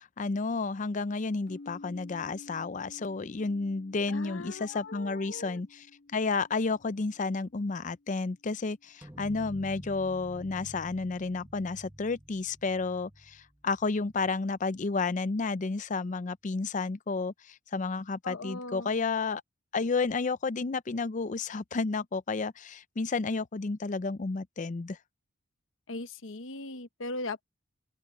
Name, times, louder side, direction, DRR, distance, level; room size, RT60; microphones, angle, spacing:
voice 1, 0.0-5.9 6.1-19.4 19.7-25.0, left 4 dB, 40° left, 0.5 m, -31 dB
sound 1, 1.5-9.3, left 2 dB, 55° left, 3.2 m, -53 dB
voice 2, 4.1-5.6 18.2-18.9 25.9-27.4, left 2 dB, 75° left, 1.0 m, -39 dB
sound 2, 9.0-14.5, right 1 dB, 10° right, 0.9 m, -49 dB
open air
head